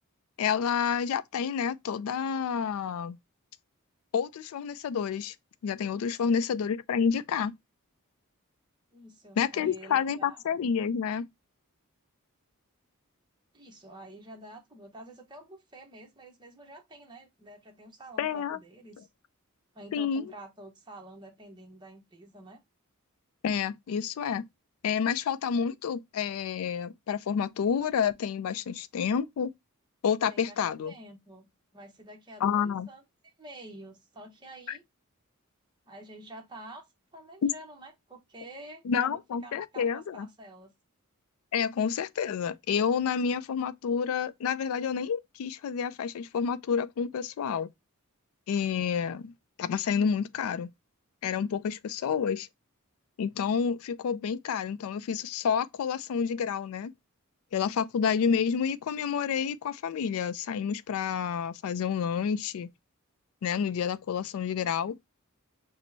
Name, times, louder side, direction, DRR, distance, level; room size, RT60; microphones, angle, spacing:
voice 1, 0.4-3.2 4.1-5.3 5.6-7.5 9.4-11.3 18.2-18.6 19.9-20.2 23.4-24.4 24.8-29.5 30.0-30.9 32.4-32.9 34.7-34.8 37.4-37.5 38.9-40.3 41.5-47.7 48.5-49.3 49.6-50.7 51.2-52.5 53.2-56.9 57.5-62.7 63.4-65.0, left 7 dB, 70° left, 0.3 m, -29 dB
voice 2, 8.9-10.4 13.5-19.1 19.7-22.6 30.3-34.8 35.9-36.9 37.1-40.7, right 1 dB, 20° right, 0.8 m, -48 dB
6.0 x 2.0 x 2.6 m
head